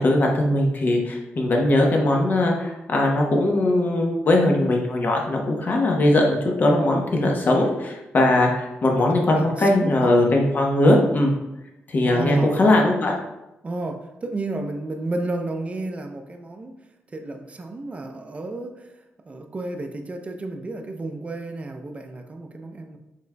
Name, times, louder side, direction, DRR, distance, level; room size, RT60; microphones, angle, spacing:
voice 1, 0.0-11.3 11.9-13.2, left 1 dB, 45° left, 0.9 m, -20 dB
voice 2, 9.1-10.1 12.0-12.8 13.6-16.7 17.1-18.9 19.3-23.0, right 2 dB, 30° right, 0.6 m, -32 dB
6.5 x 3.6 x 2.2 m
cardioid pair, 95°, 4 cm